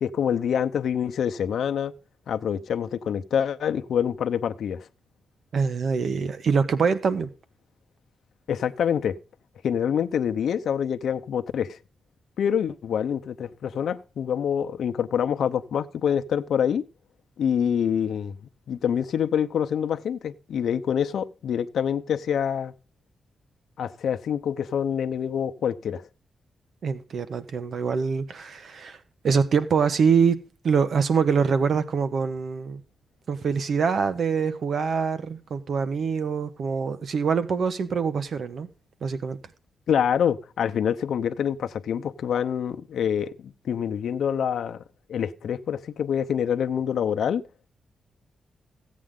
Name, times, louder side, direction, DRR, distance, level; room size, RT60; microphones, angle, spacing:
voice 1, 0.0-1.9 2.3-4.9 8.5-9.2 9.6-11.8 12.4-16.8 17.4-18.4 18.7-22.7 23.8-26.1 39.9-44.8 45.1-47.4, left 8 dB, 75° left, 0.7 m, -26 dB
voice 2, 5.5-7.3 26.8-29.0 29.2-30.4 30.6-32.8 33.3-38.7 39.0-39.4, right 6 dB, 60° right, 1.2 m, -24 dB
15.5 x 8.5 x 3.8 m
wide cardioid pair, 125°, 0 cm